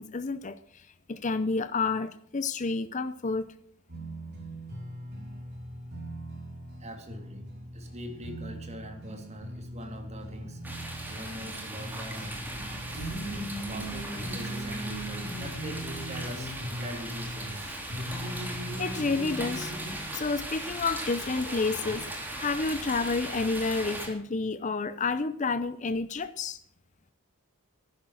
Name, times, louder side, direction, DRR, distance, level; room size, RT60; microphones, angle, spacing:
voice 1, 0.0-3.5 18.4-19.7 20.1-26.6, left 4 dB, 35° left, 12 dB, 0.6 m, -30 dB
sound 1, 3.9-20.2, right 1 dB, 50° right, 4.8 m, -39 dB
voice 2, 6.8-7.4 7.7-10.6 11.1-12.4 13.2-17.8, equal, 30° right, 4 dB, 3.0 m, -42 dB
sound 2, 10.6-24.1, right 1 dB, 10° right, 3.2 m, -38 dB
14.5 x 11.5 x 6.4 m, 0.66 s
head